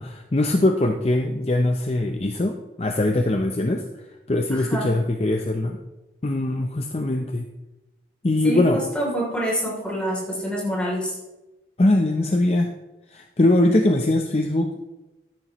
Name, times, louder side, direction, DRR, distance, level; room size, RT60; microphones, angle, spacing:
voice 1, 0.0-3.8 4.3-5.8 6.2-7.5 8.2-8.8 11.8-12.7 13.1-14.9, left 1 dB, 35° left, 4 dB, 0.6 m, -21 dB
voice 2, 4.5-4.9 8.4-11.2, equal, 5° left, -3 dB, 3.1 m, -26 dB
13.0 x 10.5 x 3.1 m, 1.0 s
head